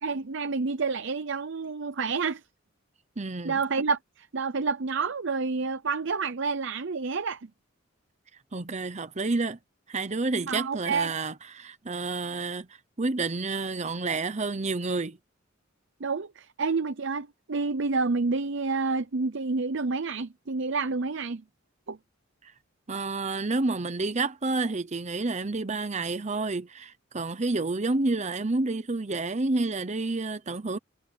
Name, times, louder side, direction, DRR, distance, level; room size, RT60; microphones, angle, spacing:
voice 1, 0.0-2.4 3.4-7.5 10.5-11.1 16.0-21.4 21.9-22.0, right 4 dB, 65° right, 0.7 m, -29 dB
voice 2, 3.2-3.6 8.5-9.6 9.9-12.7 13.0-15.2 22.4-22.5 22.9-30.8, right 3 dB, 35° right, 0.9 m, -29 dB
head